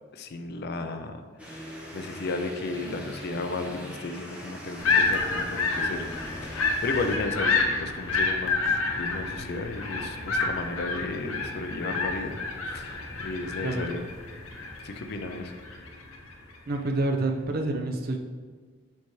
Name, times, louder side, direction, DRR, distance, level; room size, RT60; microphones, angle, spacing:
voice 1, 0.1-1.2 1.6-6.1 6.4-12.4 12.7-14.0 14.8-15.5, left 3 dB, 50° left, 7 dB, 0.4 m, -34 dB
sound 1, 1.4-7.2, left 1 dB, 5° right, 1.0 m, -41 dB
sound 2, 4.8-16.3, left 4 dB, 90° left, 0.8 m, -29 dB
voice 2, 16.7-18.2, right 2 dB, 45° right, 3 dB, 0.6 m, -28 dB
7.2 x 4.6 x 3.1 m, 1.5 s
head